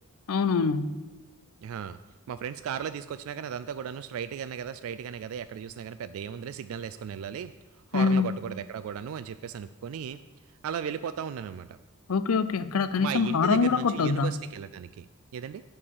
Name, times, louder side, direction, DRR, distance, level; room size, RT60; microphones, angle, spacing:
voice 1, 0.3-0.9 7.9-8.3 12.1-14.4, left 5 dB, 80° left, 14 dB, 0.5 m, -24 dB
voice 2, 1.6-2.0 2.3-7.5 7.9-10.2 10.6-11.8 13.0-15.6, right 8 dB, 70° right, 12 dB, 0.3 m, -36 dB
8.5 x 4.9 x 7.1 m, 1.1 s
head